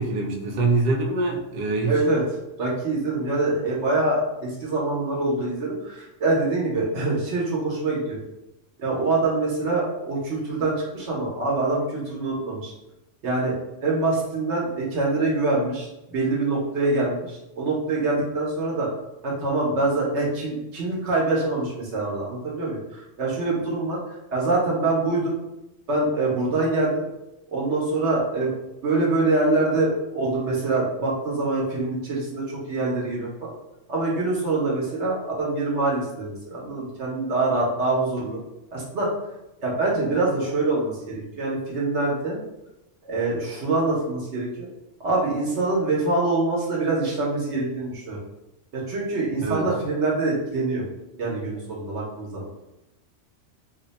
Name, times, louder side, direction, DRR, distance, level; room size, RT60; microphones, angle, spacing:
voice 1, 0.0-1.9 49.4-49.7, right 3 dB, 55° right, 1 dB, 0.6 m, -24 dB
voice 2, 1.9-2.2 2.6-8.2 8.8-12.7 13.2-13.6 13.8-18.9 19.2-25.4 25.9-27.1 27.5-28.5 28.8-33.5 33.9-38.4 38.7-39.1 39.6-42.4 43.0-44.7 45.0-48.2 48.7-50.8 51.2-52.5, right 2 dB, 70° right, -4 dB, 1.1 m, -25 dB
2.9 x 2.1 x 4.0 m, 0.91 s
omnidirectional pair, 1.2 m